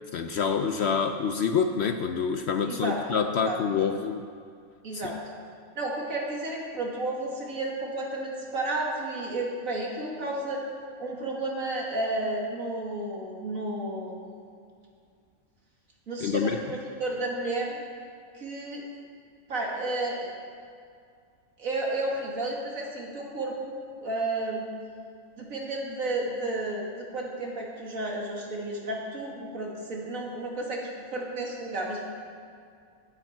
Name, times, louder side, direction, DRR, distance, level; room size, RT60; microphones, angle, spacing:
voice 1, 0.1-4.3 4.9-5.1 16.2-16.6, left 6 dB, 60° left, 7 dB, 0.7 m, -27 dB
voice 2, 2.6-3.0 3.4-3.6 4.8-5.2 5.8-10.6 11.0-14.1 16.1-17.8 18.3-18.8 19.5-20.3 21.6-24.7 25.4-32.1, right 2 dB, 70° right, -2 dB, 2.4 m, -32 dB
19.0 x 8.8 x 4.6 m, 2.3 s
omnidirectional pair, 1.5 m